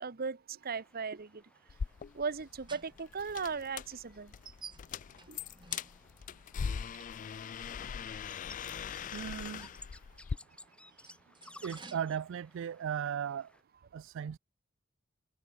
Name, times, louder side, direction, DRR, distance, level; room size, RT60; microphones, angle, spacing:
voice 1, 0.0-1.4 2.1-4.3 5.3-5.4, right 5 dB, 45° right, 0.9 m, -37 dB
sound 1, 0.6-13.6, left 1 dB, 5° left, 1.4 m, -59 dB
sound 2, 1.7-10.4, left 6 dB, 40° left, 0.3 m, -41 dB
sound 3, 2.1-6.4 7.7-7.8 10.6-12.2, right 5 dB, 25° right, 2.8 m, -54 dB
voice 2, 9.1-9.7 11.6-13.5 13.9-14.4, right 8 dB, 65° right, 0.3 m, -37 dB
head